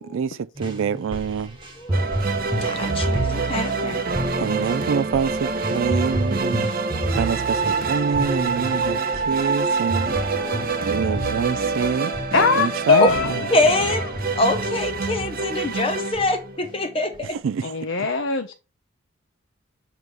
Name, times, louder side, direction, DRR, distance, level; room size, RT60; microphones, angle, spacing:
voice 1, 0.0-1.6 4.4-6.8 7.2-10.1 10.9-12.1 12.6-13.5 17.3-17.8, right 6 dB, 70° right, 0.3 m, -26 dB
sound 1, 0.6-12.8 13.1-13.3 13.6-15.8 16.1-16.7 17.1-17.2, right 1 dB, 25° right, 1.2 m, -30 dB
voice 2, 1.8-4.2 6.9-7.2 10.4-10.8 13.0-13.1 13.5-14.0 14.4-17.4, left 2 dB, 25° left, 0.7 m, -25 dB
sound 2, 1.9-16.9, right 4 dB, 45° right, 0.8 m, -26 dB
voice 3, 12.3-13.9 17.6-18.5, left 5 dB, 70° left, 0.7 m, -21 dB
8.0 x 3.1 x 5.2 m
head